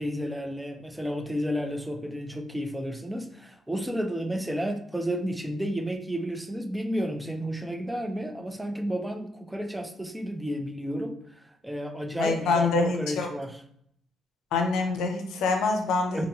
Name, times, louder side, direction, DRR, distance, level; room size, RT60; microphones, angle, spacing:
voice 1, 0.0-13.6 16.1-16.3, equal, 5° right, 5 dB, 0.4 m, -32 dB
voice 2, 12.2-13.3 14.5-16.3, left 3 dB, 85° left, 4 dB, 0.5 m, -25 dB
2.9 x 2.6 x 2.8 m, 0.70 s
cardioid pair, 90°, 0 cm